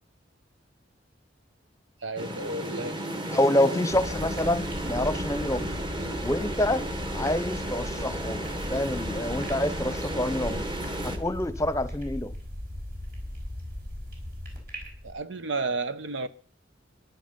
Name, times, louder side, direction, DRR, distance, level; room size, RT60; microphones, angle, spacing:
voice 1, 2.0-3.8 15.0-16.3, right 3 dB, 80° right, 1.1 m, -33 dB
sound 1, 2.2-11.2, right 1 dB, 25° right, 1.6 m, -33 dB
voice 2, 3.3-5.8 6.2-6.8 7.1-10.7 11.0-12.3, left 1 dB, 15° left, 0.8 m, -27 dB
sound 2, 3.9-15.1, left 1 dB, 50° right, 5.3 m, -37 dB
14.5 x 11.0 x 5.3 m
head